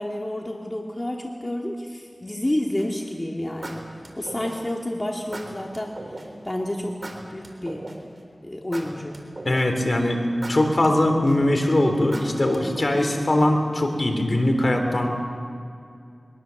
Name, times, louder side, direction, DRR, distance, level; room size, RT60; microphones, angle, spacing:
voice 1, 0.0-3.8 4.2-6.0 6.4-7.9 8.4-9.2, left 1 dB, 30° left, 0 dB, 2.1 m, -29 dB
sound 1, 2.8-3.1 3.6-4.8 5.3-6.3 7.0-8.2 8.7-9.9 10.4-11.6 12.1-13.3, right 2 dB, 55° right, 3.8 m, -37 dB
voice 2, 9.5-10.2 10.5-15.1, left 1 dB, 55° left, 4 dB, 3.5 m, -21 dB
23.0 x 21.5 x 7.1 m, 2.4 s
wide cardioid pair, 50°, 0 cm